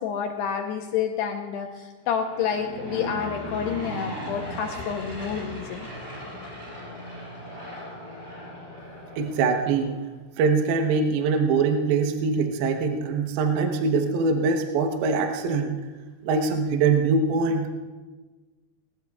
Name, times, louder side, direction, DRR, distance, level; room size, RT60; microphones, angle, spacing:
voice 1, 0.0-5.9, left 7 dB, 80° left, 3 dB, 2.7 m, -29 dB
Aircraft / Engine, 2.0-10.0, equal, 20° right, 5.4 m, -38 dB
voice 2, 9.2-10.0 10.4-15.7 16.2-17.7, right 4 dB, 70° right, 3 dB, 2.7 m, -23 dB
21.0 x 19.0 x 2.4 m, 1.3 s
omnidirectional pair, 5.2 m